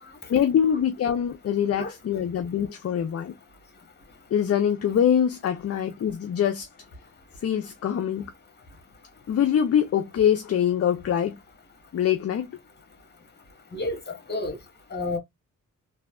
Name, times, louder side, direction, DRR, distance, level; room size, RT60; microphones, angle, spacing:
voice 1, 0.3-3.3 4.3-6.7 7.4-8.2 9.3-11.4 11.9-12.5, left 9 dB, 45° left, 0.5 m, -24 dB
voice 2, 13.7-14.6 14.9-15.2, left 2 dB, 30° left, 1.4 m, -30 dB
3.4 x 2.7 x 2.4 m
cardioid pair, 70°, 33 cm